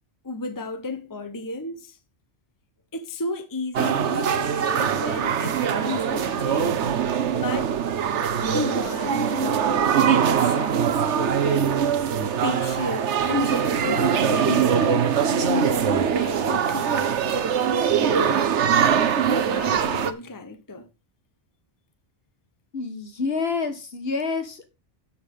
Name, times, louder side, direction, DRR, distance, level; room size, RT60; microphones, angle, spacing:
voice 1, 0.2-2.0 2.9-6.8 7.3-7.7 8.4-11.8 12.4-17.1 18.0-18.5 19.3-20.9, left 3 dB, 20° left, 1.0 m, -32 dB
sound 1, 3.7-20.1, right 8 dB, 75° right, 1.2 m, -22 dB
voice 2, 22.7-24.7, left 4 dB, 55° left, 1.6 m, -28 dB
12.0 x 7.1 x 3.6 m
omnidirectional pair, 1.2 m